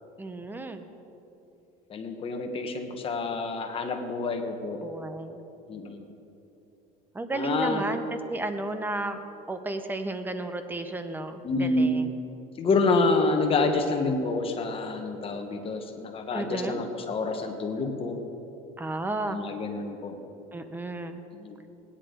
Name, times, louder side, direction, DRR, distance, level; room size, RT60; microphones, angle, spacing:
voice 1, 0.2-0.9 4.8-5.4 7.1-9.2 9.5-12.1 16.3-16.8 18.8-19.4 20.5-21.2, right 2 dB, 10° right, 8 dB, 0.8 m, -33 dB
voice 2, 1.9-4.8 5.7-6.0 7.3-7.8 11.4-12.0 12.6-18.2 19.2-20.2 21.4-21.5, left 3 dB, 30° left, 5 dB, 1.3 m, -28 dB
17.0 x 10.0 x 3.9 m, 3.0 s
cardioid pair, 125°, 17 cm